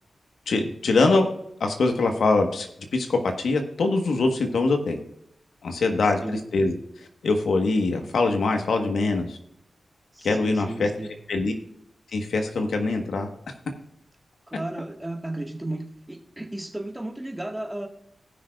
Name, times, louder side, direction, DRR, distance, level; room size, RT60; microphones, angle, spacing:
voice 1, 0.5-1.3 1.6-2.7 2.9-5.0 5.6-6.7 7.2-9.4 10.2-10.9 11.3-11.5 12.1-13.3, left 3 dB, 85° left, 4 dB, 1.4 m, -23 dB
voice 2, 6.0-6.4 10.1-11.1 14.5-17.9, right 1 dB, 15° right, 3 dB, 1.7 m, -34 dB
18.5 x 6.3 x 2.5 m, 0.76 s
cardioid pair, 60°, 0 cm